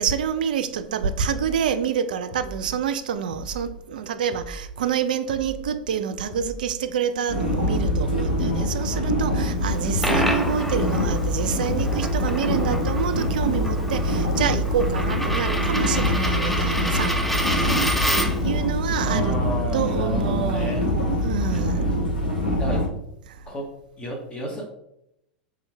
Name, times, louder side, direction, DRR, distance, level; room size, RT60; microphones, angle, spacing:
voice 1, 0.0-17.2 17.6-17.7 18.3-19.4 19.7-20.7 21.2-21.8, right 8 dB, 70° right, 0.3 m, -27 dB
sound 1, 1.3-1.7 2.3-2.7 3.3-3.7 4.3-4.7 5.3-5.7 6.3-6.7 7.3-7.7 8.3-8.7, right 1 dB, 65° left, 1.2 m, -38 dB
sound 2, 7.3-22.9, left 1 dB, 85° left, 0.9 m, -24 dB
Coin (dropping), 9.7-18.5, equal, 5° left, 0.4 m, -29 dB
voice 2, 19.0-20.9 22.6-22.9 23.5-24.7, right 1 dB, 20° left, 0.8 m, -31 dB
3.6 x 3.0 x 3.2 m
figure-of-eight pair, 90°, 5 cm